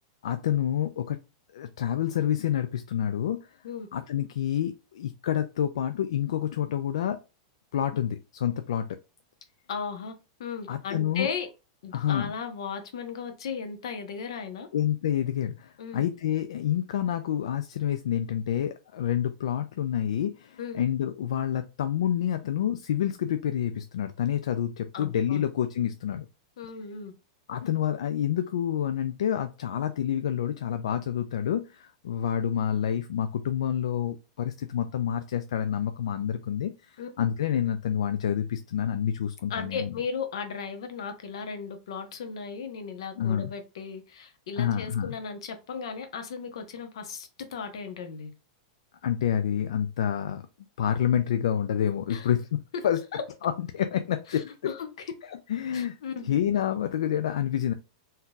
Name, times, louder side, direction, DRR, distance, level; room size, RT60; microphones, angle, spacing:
voice 1, 0.2-1.2 1.5-3.5 3.9-7.2 7.7-9.0 10.7-11.3 11.9-12.3 14.7-26.3 27.5-39.9 43.2-43.5 44.6-45.2 49.0-50.4 50.8-52.6 52.8-53.0 53.4-54.5 55.5-56.0 56.2-57.7, left 9 dB, 90° left, 0.3 m, -28 dB
voice 2, 9.7-10.1 10.4-11.5 11.8-14.7 15.8-16.1 20.6-20.9 24.9-25.4 26.6-27.1 37.0-37.1 39.5-48.3 52.1-52.3 52.7-52.8 53.1-53.2 54.3-55.1 55.7-56.3, left 6 dB, 70° left, 0.9 m, -36 dB
3.6 x 2.8 x 2.3 m
supercardioid pair, 170°, 3 cm